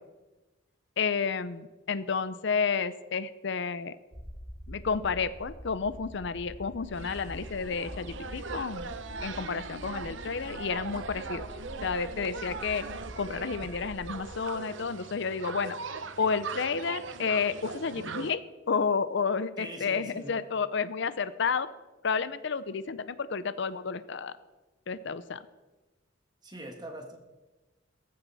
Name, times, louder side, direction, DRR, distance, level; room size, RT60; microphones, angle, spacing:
voice 1, 1.0-4.0 4.7-11.5 11.8-12.9 13.2-15.8 16.2-21.7 22.0-24.4 24.9-25.4, left 5 dB, 65° left, 14 dB, 0.7 m, -31 dB
sound 1, 4.1-14.4, equal, 15° left, 1.9 m, -45 dB
sound 2, 6.9-18.3, right 4 dB, 70° right, 0.8 m, -40 dB
voice 2, 19.6-20.5 26.4-27.2, right 1 dB, 20° right, 4 dB, 1.7 m, -42 dB
17.5 x 15.0 x 4.1 m, 1.1 s
head